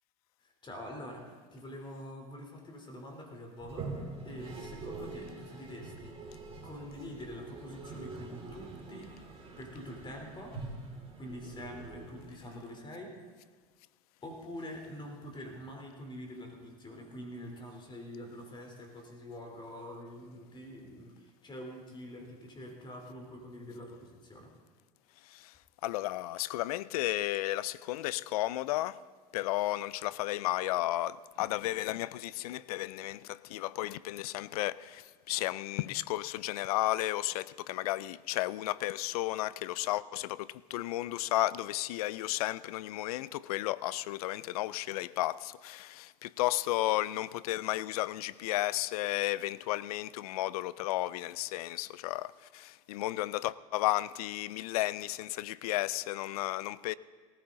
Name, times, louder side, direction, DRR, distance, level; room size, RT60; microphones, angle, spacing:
voice 1, 0.4-6.3 6.6-9.1 9.6-10.6 11.2-13.2 14.2-24.5, equal, 25° left, 3.3 m, -45 dB
Toilet flush, 3.6-12.7, right 3 dB, 30° right, 4.3 m, -45 dB
voice 2, 25.8-29.0 29.3-56.9, left 16 dB, 80° left, 0.4 m, -33 dB
18.5 x 14.5 x 3.8 m
hypercardioid pair, 90°, 19 cm